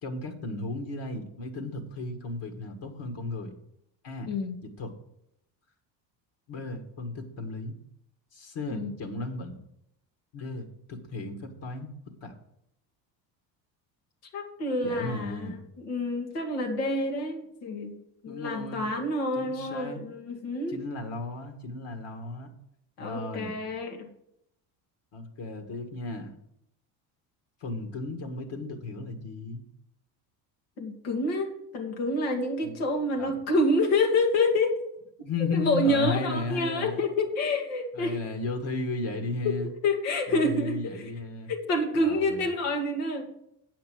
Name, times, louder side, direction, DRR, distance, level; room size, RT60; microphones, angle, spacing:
voice 1, 0.0-3.5 4.0-4.3 4.8-4.9 6.5-7.7 8.3-9.6 10.3-11.9 12.2-12.3 14.8-15.6 18.3-18.9 19.4-20.0 20.7-22.5 23.0-23.6 25.1-26.4 27.6-29.6 32.6-32.7 33.2-33.4 35.2-37.0 37.9-39.7 40.3-41.5 41.9-42.4, left 3 dB, 60° left, 5 dB, 2.0 m, -35 dB
voice 2, 4.3-4.6 8.7-8.9 14.3-18.0 18.2-20.8 23.0-24.1 30.8-34.8 35.5-38.2 39.4-39.6 39.8-41.0 41.5-43.3, left 2 dB, 90° left, 2 dB, 2.1 m, -28 dB
8.2 x 5.8 x 7.7 m, 0.75 s
supercardioid pair, 80°, 48 cm